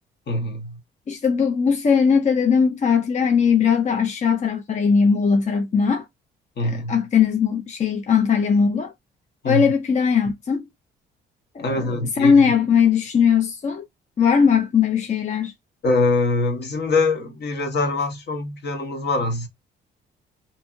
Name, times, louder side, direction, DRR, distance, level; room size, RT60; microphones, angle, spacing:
voice 1, 0.3-0.8 6.6-7.0 9.4-9.7 11.6-12.4 15.8-19.5, left 2 dB, 55° left, 1.0 m, -23 dB
voice 2, 1.1-6.1 6.6-8.9 9.5-10.7 11.5-13.8 14.2-15.5, left 6 dB, 35° left, 0.5 m, -19 dB
2.8 x 2.6 x 2.4 m
cardioid pair, 90°, 20 cm